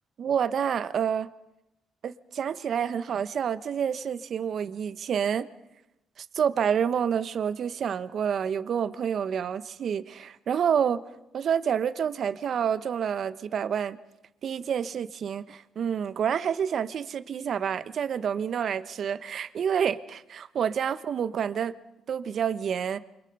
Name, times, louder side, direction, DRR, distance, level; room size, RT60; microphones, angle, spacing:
voice 1, 0.2-1.3 2.0-5.5 6.3-11.0 11.3-14.0 14.4-21.7 22.1-23.0, right 8 dB, 60° right, 13 dB, 1.0 m, -28 dB
29.0 x 24.5 x 5.5 m, 0.92 s
cardioid pair, 90°, 0 cm